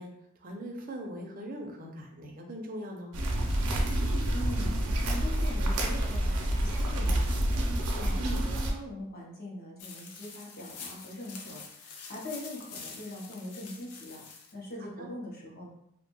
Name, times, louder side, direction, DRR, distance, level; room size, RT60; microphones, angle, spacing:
voice 1, 0.0-3.1 8.2-8.4 14.8-15.1, right 1 dB, 40° right, 2 dB, 0.4 m, -41 dB
sound 1, 3.1-8.7, right 1 dB, 90° right, 0.5 m, -28 dB
voice 2, 4.3-15.7, left 1 dB, 45° left, -3 dB, 0.7 m, -42 dB
sound 2, 9.8-14.5, left 5 dB, 85° left, 0.5 m, -46 dB
2.6 x 2.2 x 2.9 m, 0.77 s
head